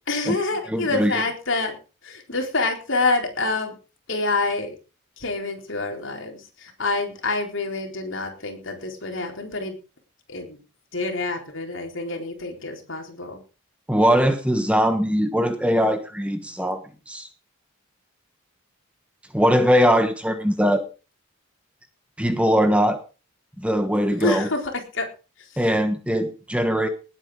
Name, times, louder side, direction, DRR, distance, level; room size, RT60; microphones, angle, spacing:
voice 1, 0.1-1.7 2.0-3.7 4.1-4.7 5.2-9.8 10.3-10.6 10.9-13.4 24.2-24.6 24.9-25.1, left 3 dB, 60° left, 3 dB, 4.2 m, -27 dB
voice 2, 0.7-1.2 13.9-16.8 17.1-17.3 19.3-20.8 22.2-23.0 23.6-24.5 25.6-26.9, equal, 5° right, 8 dB, 1.3 m, -21 dB
19.0 x 9.1 x 5.0 m, 0.34 s
head